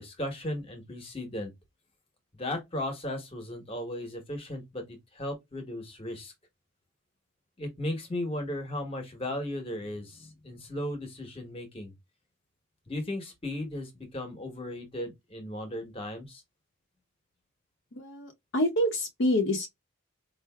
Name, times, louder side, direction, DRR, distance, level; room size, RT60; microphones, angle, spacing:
voice 1, 0.0-1.5 2.3-6.3 7.6-11.9 12.9-16.4, left 1 dB, 25° left, 1.0 m, -36 dB
voice 2, 17.9-19.7, left 1 dB, 60° left, 0.7 m, -27 dB
4.5 x 2.5 x 2.2 m
head